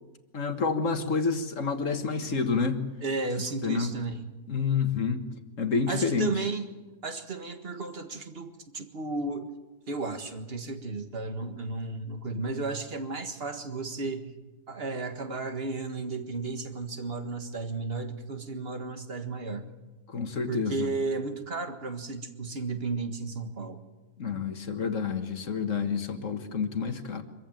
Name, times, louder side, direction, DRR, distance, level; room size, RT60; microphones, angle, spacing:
voice 1, 0.3-2.9 3.4-3.9 4.5-5.3 5.6-6.3 20.1-20.9 24.2-27.2, left 5 dB, 55° left, 7 dB, 1.9 m, -29 dB
voice 2, 3.0-4.3 5.9-6.6 7.0-9.5 9.9-14.3 14.7-19.7 20.5-23.8, right 3 dB, 40° right, 7 dB, 1.9 m, -33 dB
25.0 x 15.0 x 9.1 m, 1.1 s
omnidirectional pair, 1.7 m